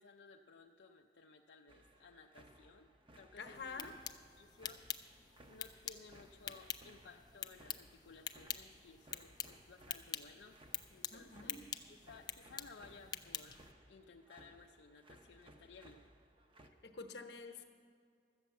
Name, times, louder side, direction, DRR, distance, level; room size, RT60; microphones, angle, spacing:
voice 1, 0.0-3.9 4.4-5.0 5.5-10.6 10.9-16.1, left 4 dB, 90° left, 2 dB, 0.5 m, -59 dB
sound 1, 1.7-16.7, right 1 dB, 30° right, 0.7 m, -63 dB
voice 2, 3.4-4.0 11.1-11.6 16.8-17.6, left 4 dB, 70° left, 6 dB, 0.9 m, -48 dB
sound 2, 3.5-13.7, left 8 dB, 25° left, 0.4 m, -47 dB
13.0 x 8.4 x 7.0 m, 2.3 s
head